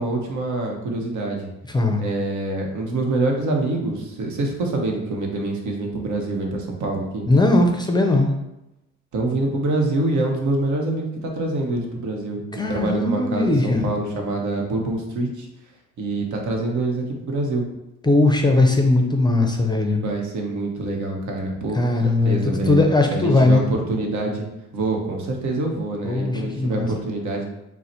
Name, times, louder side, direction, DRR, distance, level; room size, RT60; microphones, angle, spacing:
voice 1, 0.0-1.5 2.0-7.3 9.1-12.4 12.7-15.5 16.0-17.6 20.0-22.8 23.1-24.5 24.7-27.4, right 2 dB, 75° right, 1 dB, 0.9 m, -25 dB
voice 2, 1.7-2.0 7.3-8.3 12.6-13.9 18.0-20.0 21.8-23.6 26.0-26.9, left 2 dB, 15° left, 3 dB, 0.5 m, -19 dB
3.8 x 2.1 x 4.3 m, 0.90 s
cardioid pair, 90°, 30 cm